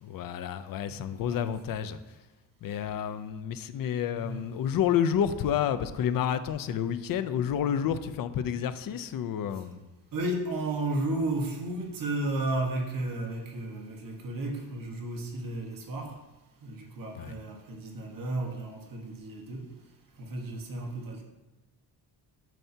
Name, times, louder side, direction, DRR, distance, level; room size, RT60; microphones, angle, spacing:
voice 1, 0.0-2.0 2.6-9.8 17.2-17.3, left 9 dB, 55° left, 12 dB, 0.5 m, -30 dB
voice 2, 0.9-1.6 4.2-4.4 9.5-9.6 10.1-16.2 16.6-19.7 20.2-21.2, right 2 dB, 55° right, 1 dB, 1.4 m, -33 dB
9.1 x 5.6 x 2.8 m, 1.1 s
cardioid pair, 155°, 41 cm